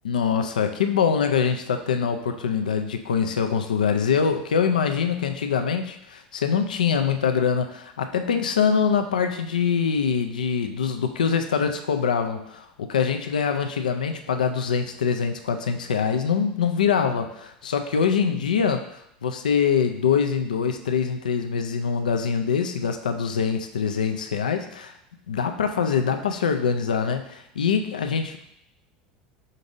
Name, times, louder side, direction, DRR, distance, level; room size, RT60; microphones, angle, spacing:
voice 1, 0.0-18.8 19.2-24.9 25.3-28.5, left 6 dB, 85° left, 7 dB, 0.4 m, -24 dB
5.2 x 3.8 x 2.6 m, 0.76 s
hypercardioid pair, 80°, 4 cm